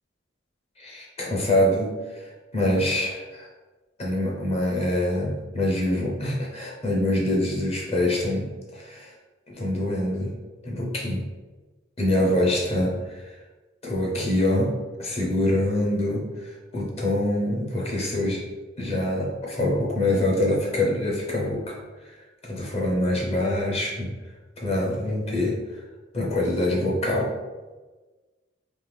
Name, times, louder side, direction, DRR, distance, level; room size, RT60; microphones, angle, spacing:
voice 1, 0.8-3.5 4.0-9.1 9.5-10.3 10.6-11.2 12.0-13.2 13.8-18.5 18.8-21.8 22.4-24.1 24.6-25.6 26.1-27.4, left 1 dB, 30° left, -2 dB, 0.8 m, -25 dB
3.6 x 2.8 x 3.3 m, 1.3 s
head